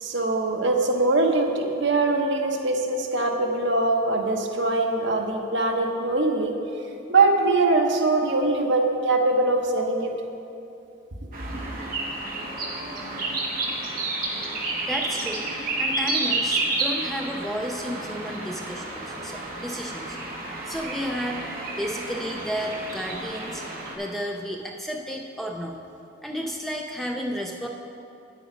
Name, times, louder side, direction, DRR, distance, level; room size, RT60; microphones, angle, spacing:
voice 1, 0.0-6.5 7.1-10.1, right 2 dB, 60° right, 2 dB, 0.9 m, -22 dB
sound 1, 11.3-23.9, right 2 dB, 45° right, 1.3 m, -30 dB
voice 2, 14.8-15.5 15.8-20.2 20.6-21.5 21.8-23.6 24.0-25.8 26.2-27.7, equal, ahead, 1 dB, 0.4 m, -32 dB
9.0 x 8.7 x 5.0 m, 2.7 s
head